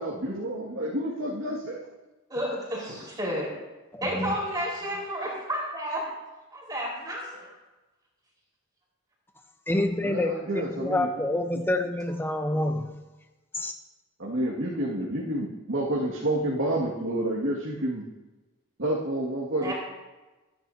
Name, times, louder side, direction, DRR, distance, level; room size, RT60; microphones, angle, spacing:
voice 1, 0.0-1.9 10.0-11.4 14.2-18.0 18.8-19.7, right 1 dB, 75° right, -5 dB, 2.1 m, -29 dB
voice 2, 2.3-3.5 4.0-6.1 6.5-7.5 19.6-19.7, equal, 20° right, -4 dB, 4.6 m, -31 dB
voice 3, 3.9-4.4 9.7-13.0 13.5-13.7, left 1 dB, 10° left, 6 dB, 0.8 m, -28 dB
24.0 x 10.5 x 2.8 m, 1.1 s
head